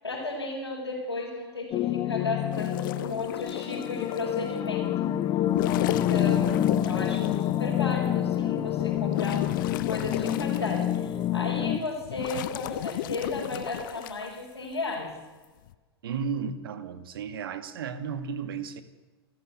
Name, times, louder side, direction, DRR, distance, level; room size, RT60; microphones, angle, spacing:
voice 1, 0.0-5.1 5.8-9.4 9.9-15.1, left 2 dB, 85° left, -6 dB, 6.7 m, -34 dB
sound 1, 1.7-11.8, left 11 dB, 30° left, 1.2 m, -27 dB
sound 2, 2.5-4.3 5.4-7.5 8.1-8.2 8.7-11.2 11.6-14.3 15.4-15.7, left 13 dB, 55° left, 1.2 m, -35 dB
voice 2, 16.0-18.8, right 6 dB, 60° right, 12 dB, 2.2 m, -34 dB
29.0 x 14.5 x 8.4 m, 1.3 s
figure-of-eight pair, 95°, 13 cm